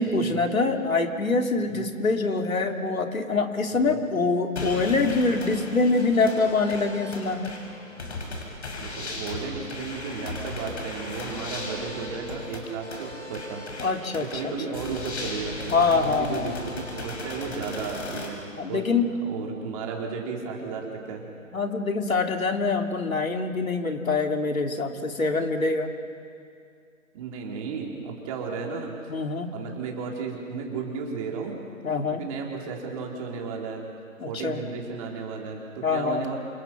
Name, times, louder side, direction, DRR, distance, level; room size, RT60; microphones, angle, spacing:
voice 1, 0.0-7.6 13.8-14.5 15.7-16.6 18.6-19.1 21.5-25.9 29.1-29.5 31.8-32.2 34.2-34.6 35.8-36.2, left 3 dB, 70° left, 4 dB, 3.1 m, -25 dB
sound 1, 4.6-18.3, left 2 dB, 50° left, 6.5 m, -37 dB
voice 2, 8.8-13.6 14.2-18.4 18.7-18.9 19.2-21.3 27.1-28.9 29.5-31.6 32.1-33.8 34.3-36.4, right 5 dB, 25° right, 0 dB, 3.7 m, -34 dB
29.0 x 28.0 x 6.0 m, 2.4 s
figure-of-eight pair, 150°, 42 cm